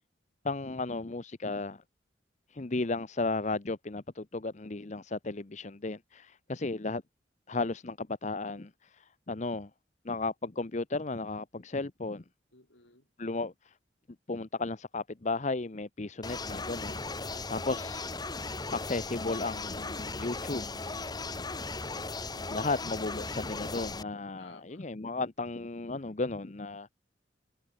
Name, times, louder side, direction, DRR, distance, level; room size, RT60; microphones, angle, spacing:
voice 1, 0.4-1.8 2.5-7.0 7.5-8.7 9.3-9.7 10.0-12.2 13.2-13.5 14.3-17.0 17.5-18.1 18.7-20.7 22.5-26.9, left 3 dB, 40° left, 0.8 m, -34 dB
voice 2, 12.5-13.1 17.2-17.7 21.1-21.6 24.4-24.9, left 2 dB, 80° left, 7.1 m, -58 dB
sound 1, 16.2-24.0, left 3 dB, 20° left, 1.4 m, -37 dB
head